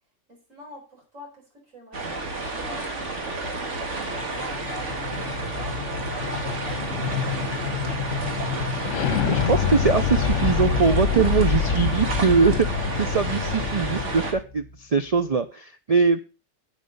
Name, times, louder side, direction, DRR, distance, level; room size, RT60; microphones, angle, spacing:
voice 1, 0.3-7.4, left 1 dB, 90° right, -1 dB, 4.9 m, -45 dB
sound 1, 1.9-14.3, right 2 dB, 65° right, 2.1 m, -31 dB
sound 2, 4.2-14.4, left 6 dB, 75° left, 1.2 m, -27 dB
sound 3, 6.6-15.3, left 5 dB, 35° left, 1.9 m, -38 dB
voice 2, 9.3-16.2, right 5 dB, 50° right, 9 dB, 0.4 m, -22 dB
8.1 x 7.7 x 5.3 m, 0.32 s
omnidirectional pair, 1.3 m